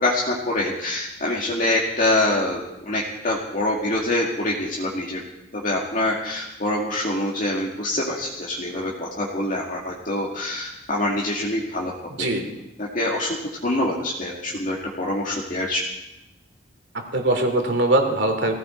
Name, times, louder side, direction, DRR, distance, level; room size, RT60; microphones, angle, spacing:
voice 1, 0.0-5.2 5.6-11.9 12.2-12.3 12.8-13.3 13.6-15.8, left 1 dB, 45° left, -4 dB, 2.1 m, -25 dB
voice 2, 16.9-18.5, right 2 dB, 65° right, 4 dB, 2.8 m, -21 dB
19.5 x 16.0 x 4.5 m, 0.93 s
head